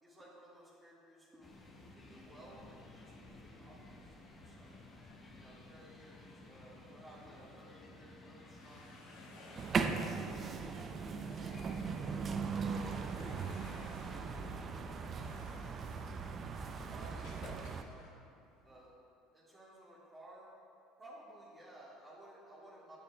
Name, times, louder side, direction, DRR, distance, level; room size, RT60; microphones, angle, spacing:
voice 1, 0.0-4.0 4.3-4.8 5.4-9.9 10.2-11.9 12.5-15.5 16.8-18.1 18.6-18.9 19.3-20.5 21.0-23.0, right 1 dB, 25° right, -8 dB, 1.6 m, -58 dB
sound 1, 1.4-14.6, left 2 dB, 30° left, 1.0 m, -55 dB
sound 2, 8.3-18.9, left 2 dB, 70° left, 1.1 m, -59 dB
sound 3, 9.6-17.8, right 5 dB, 40° right, 0.4 m, -39 dB
8.1 x 7.3 x 2.2 m, 2.6 s
hypercardioid pair, 75°, 0 cm